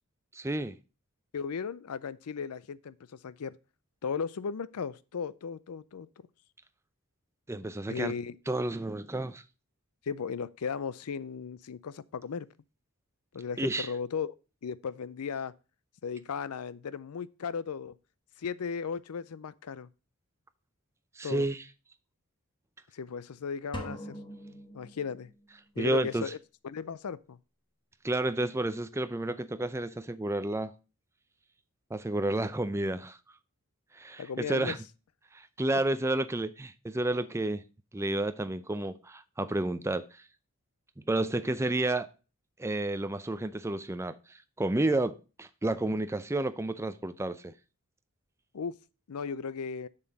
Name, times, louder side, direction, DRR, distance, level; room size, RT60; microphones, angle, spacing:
voice 1, 0.3-0.8 7.5-8.1 8.5-9.4 13.6-13.9 21.2-21.6 25.8-26.3 28.0-30.7 31.9-33.2 33.9-34.8 35.3-37.6 37.9-40.1 41.0-42.1 42.6-44.2 44.6-47.5, right 2 dB, 10° right, 0.5 m, -31 dB
voice 2, 1.3-3.0 3.2-3.6 4.0-6.1 7.9-8.4 10.1-12.5 13.3-14.3 14.6-15.5 16.0-17.9 18.4-19.9 21.2-21.5 22.9-24.1 24.7-25.3 25.8-26.4 26.6-27.4 34.2-34.8 48.5-48.8 49.1-49.9, left 6 dB, 85° left, 0.5 m, -36 dB
sound 1, 23.7-25.5, equal, 20° left, 1.2 m, -42 dB
7.1 x 6.7 x 3.9 m
head